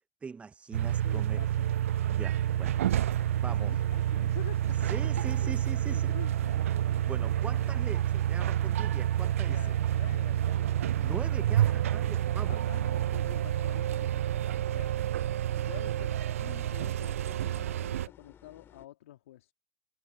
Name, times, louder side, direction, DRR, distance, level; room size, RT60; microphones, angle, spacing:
voice 1, 0.2-1.4 2.1-2.8 3.4-3.7 4.9-6.1 7.0-9.7 11.0-12.6, right 5 dB, 15° right, 0.7 m, -42 dB
sound 1, 0.7-18.1, right 11 dB, 70° right, 0.4 m, -29 dB
voice 2, 0.9-1.8 3.5-6.6 9.5-11.4 12.4-14.3 14.7-15.0 15.6-19.5, left 14 dB, 65° left, 3.0 m, -48 dB
sound 2, 2.4-18.9, left 9 dB, 30° left, 3.6 m, -55 dB
hypercardioid pair, 95°, 8 cm